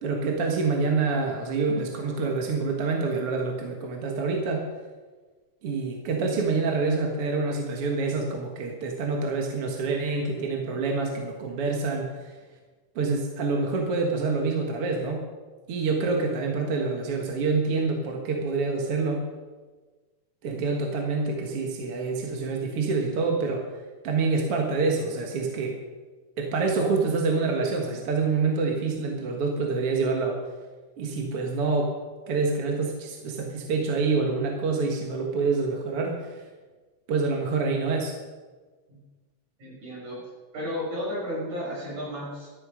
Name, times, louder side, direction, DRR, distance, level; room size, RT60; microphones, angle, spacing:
voice 1, 0.0-4.7 5.6-12.3 13.0-15.2 15.7-19.2 20.4-23.7 24.0-25.8 26.4-30.4 31.0-32.0 32.3-36.4 37.1-38.1, right 4 dB, 50° right, 1 dB, 2.3 m, -26 dB
voice 2, 39.6-40.2 40.5-42.5, equal, 65° right, -5 dB, 8.0 m, -33 dB
16.0 x 13.5 x 5.1 m, 1.4 s
omnidirectional pair, 3.6 m